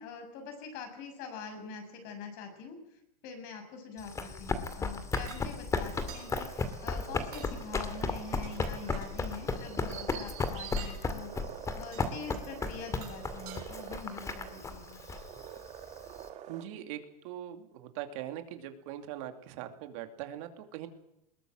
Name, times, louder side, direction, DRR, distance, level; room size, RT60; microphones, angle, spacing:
voice 1, 0.0-15.0, left 5 dB, 50° left, 6 dB, 6.4 m, -44 dB
Run, 4.0-16.3, left 4 dB, 15° left, 2.2 m, -35 dB
sound 1, 5.1-5.4 6.1-6.3 7.2-7.5 8.2-9.1 10.6-11.0 11.9-12.1 12.8-13.6, right 8 dB, 90° right, 7.4 m, -48 dB
sound 2, 6.0-16.7, right 10 dB, 35° right, 2.1 m, -47 dB
voice 2, 16.5-20.9, right 11 dB, 60° right, 7 dB, 2.6 m, -41 dB
21.0 x 18.5 x 7.7 m, 0.82 s
supercardioid pair, 135°, 19 cm